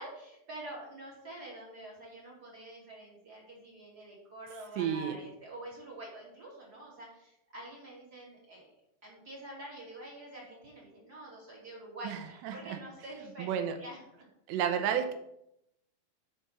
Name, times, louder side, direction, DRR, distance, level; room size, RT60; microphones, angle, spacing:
voice 1, 0.0-8.7 9.0-14.3, right 1 dB, 25° right, -4 dB, 2.4 m, -47 dB
voice 2, 4.7-5.2 12.0-13.8 14.5-15.1, right 8 dB, 80° right, 6 dB, 2.9 m, -33 dB
7.4 x 5.5 x 5.5 m, 0.79 s
omnidirectional pair, 5.1 m